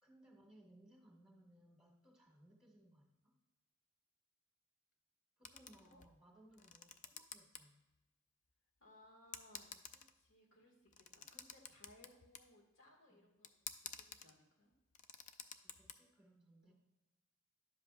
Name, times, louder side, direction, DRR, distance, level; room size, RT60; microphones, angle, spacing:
voice 1, 0.0-3.3 5.4-7.8 13.1-13.3 15.6-16.7, right 1 dB, ahead, -1 dB, 1.7 m, -65 dB
sound 1, 5.4-6.2 6.5-7.6 7.9-8.0 8.8-8.9 9.3-10.3 10.9-12.5 13.4-14.3 14.7-15.9, left 7 dB, 35° left, 0.4 m, -51 dB
voice 2, 8.8-14.7 16.7-16.8, left 1 dB, 60° left, 0 dB, 1.9 m, -66 dB
11.0 x 7.4 x 2.4 m, 1.1 s
head